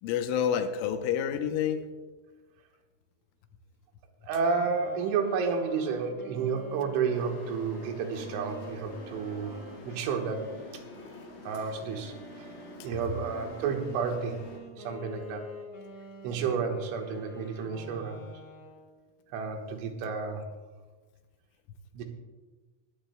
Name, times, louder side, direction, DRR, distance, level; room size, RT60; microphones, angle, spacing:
voice 1, 0.0-1.8, left 8 dB, 85° left, 7 dB, 3.2 m, -28 dB
voice 2, 4.2-9.6 9.9-10.4 11.5-12.5 12.8-14.4 14.7-15.4 16.2-18.2 19.3-20.4 21.9-22.0, right 5 dB, 80° right, 3 dB, 3.6 m, -31 dB
sound 1, 4.3-11.3 11.9-19.0, right 1 dB, 25° left, 2.8 m, -47 dB
sound 2, 7.1-14.6, left 3 dB, 55° left, 2.8 m, -47 dB
21.5 x 14.5 x 2.2 m, 1.3 s
omnidirectional pair, 5.8 m